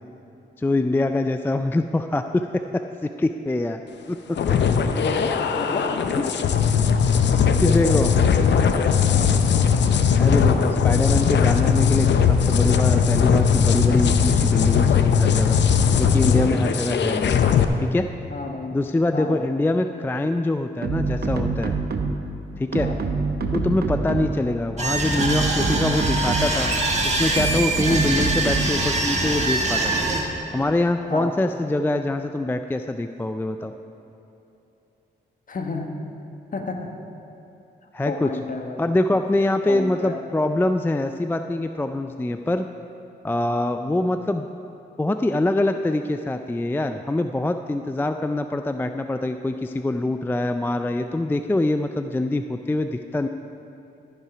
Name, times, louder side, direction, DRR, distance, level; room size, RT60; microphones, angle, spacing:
voice 1, 0.6-3.8 4.1-4.4 7.6-8.1 10.2-15.6 15.9-17.3 17.8-18.1 18.7-21.7 22.6-22.9 23.5-26.7 27.0-30.1 30.5-33.7 37.9-38.3 38.8-42.6 43.2-44.5 45.0-53.3, left 2 dB, 10° left, 8 dB, 0.3 m, -24 dB
sound 1, 4.4-17.6, left 6 dB, 70° left, 0.6 m, -19 dB
voice 2, 4.8-5.9 7.6-8.8 9.1-9.3 16.3-16.7 18.3-18.8 19.1-19.5 22.8-23.0 31.1-31.3 35.5-36.0 36.5-36.9 38.0-38.8 39.7-40.2, left 3 dB, 45° left, 3 dB, 1.1 m, -31 dB
sound 2, 20.8-22.3 22.7-24.5 25.0-26.7 27.4-28.9, right 4 dB, 55° right, 0.8 m, -26 dB
sound 3, 24.8-30.2, right 2 dB, 35° right, 1.5 m, -24 dB
14.0 x 5.6 x 5.0 m, 2.9 s
cardioid pair, 60°, 19 cm